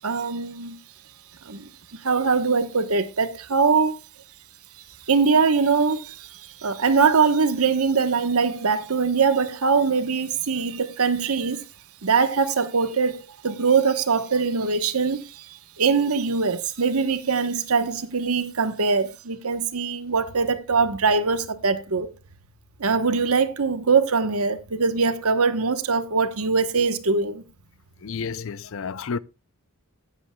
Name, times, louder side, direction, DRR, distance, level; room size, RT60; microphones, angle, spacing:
voice 1, 0.0-0.8 1.4-1.6 2.0-4.0 5.1-11.6 12.0-22.1 22.8-27.4, right 5 dB, 75° right, 1.1 m, -22 dB
voice 2, 28.0-29.2, left 5 dB, 60° left, 0.5 m, -31 dB
17.5 x 8.1 x 2.2 m
head